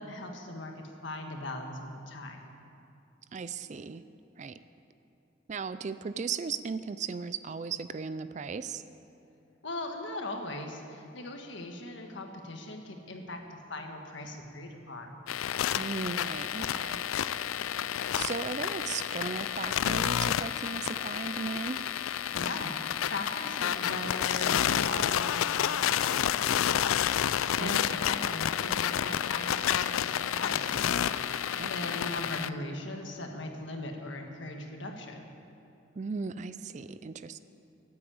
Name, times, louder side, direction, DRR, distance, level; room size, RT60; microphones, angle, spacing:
voice 1, 0.0-2.5 9.6-15.2 22.3-27.0 27.5-31.0 31.7-35.3, left 2 dB, 65° left, 3 dB, 1.6 m, -39 dB
voice 2, 3.3-4.0 4.4-4.6 5.5-8.8 15.7-17.0 17.9-21.8 27.6-27.9 31.6-32.0 35.9-37.4, right 5 dB, 35° right, 13 dB, 0.3 m, -37 dB
sound 1, 15.3-32.5, left 10 dB, 90° left, 0.4 m, -30 dB
14.5 x 8.6 x 8.7 m, 2.7 s
head